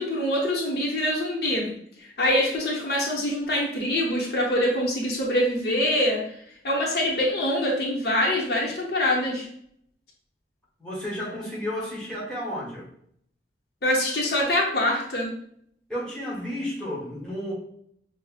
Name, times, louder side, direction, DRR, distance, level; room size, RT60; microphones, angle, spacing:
voice 1, 0.0-1.7 2.2-6.2 6.6-9.5 13.8-15.3, left 1 dB, 60° left, -2 dB, 0.8 m, -24 dB
voice 2, 10.8-12.9 15.9-17.5, equal, 5° left, -6 dB, 1.1 m, -32 dB
5.5 x 2.1 x 2.3 m, 0.68 s
head